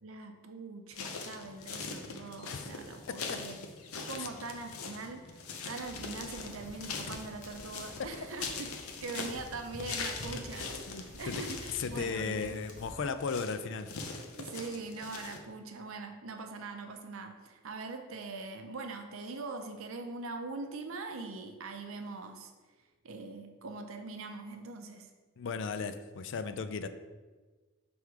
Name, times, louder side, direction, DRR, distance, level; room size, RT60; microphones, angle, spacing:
voice 1, 0.0-3.6 4.1-5.4 5.7-8.7 9.0-12.5 14.4-22.5 23.0-25.1, right 3 dB, 65° right, 6 dB, 0.6 m, -42 dB
sound 1, 0.9-15.4, left 4 dB, 75° left, 0.7 m, -42 dB
sound 2, 5.8-13.0, equal, 35° left, 0.8 m, -49 dB
voice 2, 10.9-11.4 11.8-13.9 25.4-26.9, left 5 dB, 55° left, 10 dB, 0.4 m, -36 dB
6.2 x 3.5 x 4.6 m, 1.3 s
head